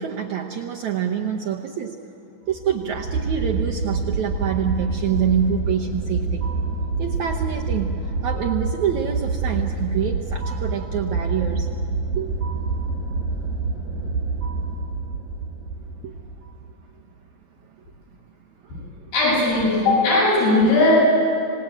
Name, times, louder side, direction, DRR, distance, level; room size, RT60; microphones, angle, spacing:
voice 1, 0.0-2.0 2.5-6.4 7.0-11.7 12.2-12.3 16.0-16.1 18.6-18.8 19.2-19.7, right 8 dB, 70° right, 1 dB, 1.9 m, -26 dB
sound 1, 2.5-16.7, right 4 dB, 50° right, 5.8 m, -27 dB
voice 2, 19.1-21.0, left 2 dB, 80° left, -7 dB, 9.3 m, -18 dB
27.0 x 18.5 x 8.9 m, 2.6 s
omnidirectional pair, 4.5 m